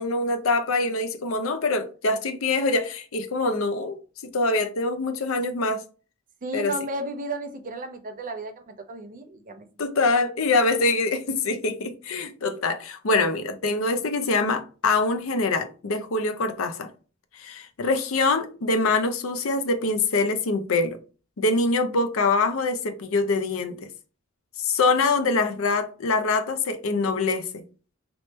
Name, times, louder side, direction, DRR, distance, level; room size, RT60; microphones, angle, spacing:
voice 1, 0.0-4.0 4.3-5.8 6.5-6.7 9.8-16.9 17.3-21.0 21.4-23.8 24.6-27.5, left 3 dB, 70° left, 0.6 m, -24 dB
voice 2, 6.4-9.7, right 2 dB, 40° right, 0.6 m, -33 dB
3.1 x 3.0 x 3.2 m
head